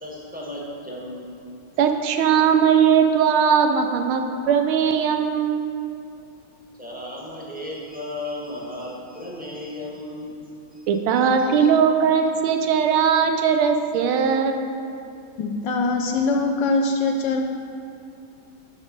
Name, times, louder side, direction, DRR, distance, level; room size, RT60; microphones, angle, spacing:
voice 1, 0.0-1.3 6.8-10.3 10.7-10.8 11.1-11.7, left 1 dB, 5° right, -4 dB, 0.7 m, -35 dB
voice 2, 1.8-5.7 10.9-14.6, right 7 dB, 80° right, 6 dB, 1.5 m, -19 dB
voice 3, 15.4-17.4, left 3 dB, 70° left, 3 dB, 1.1 m, -22 dB
12.5 x 4.2 x 5.3 m, 2.6 s
omnidirectional pair, 2.3 m